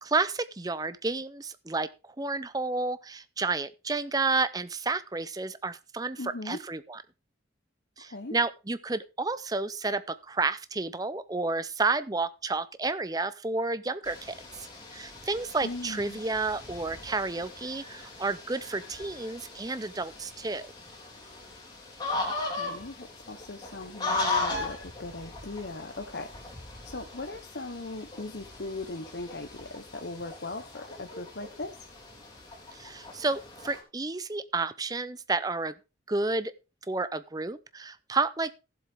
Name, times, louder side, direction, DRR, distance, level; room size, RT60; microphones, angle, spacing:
voice 1, 0.0-7.0 8.0-20.7 32.7-35.8 36.1-36.5 36.9-38.5, right 3 dB, 20° right, 14 dB, 0.6 m, -31 dB
voice 2, 6.2-6.6 8.0-8.4 15.6-16.2 22.4-26.6 26.8-31.8, left 2 dB, 65° left, 4 dB, 1.0 m, -39 dB
sound 1, 14.0-33.8, left 3 dB, 20° left, 3.1 m, -38 dB
16.0 x 7.5 x 3.6 m, 0.29 s
head